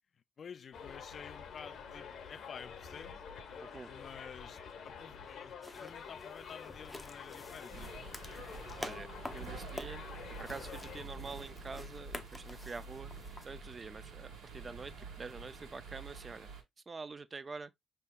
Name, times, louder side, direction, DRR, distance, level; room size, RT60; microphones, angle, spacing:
voice 1, 0.4-3.2 3.9-7.9 8.5-9.5, left 7 dB, 50° left, 0.3 m, -51 dB
Subway metro underground, 0.7-11.1, left 6 dB, 65° left, 0.9 m, -48 dB
sound 1, 5.6-13.5, left 1 dB, 15° left, 0.6 m, -49 dB
sound 2, 7.7-16.6, right 4 dB, 80° right, 1.5 m, -48 dB
voice 2, 8.8-10.0 10.4-13.1 13.4-16.5 16.9-17.7, right 4 dB, 30° right, 0.4 m, -46 dB
5.6 x 3.4 x 2.3 m
cardioid pair, 90°, 0 cm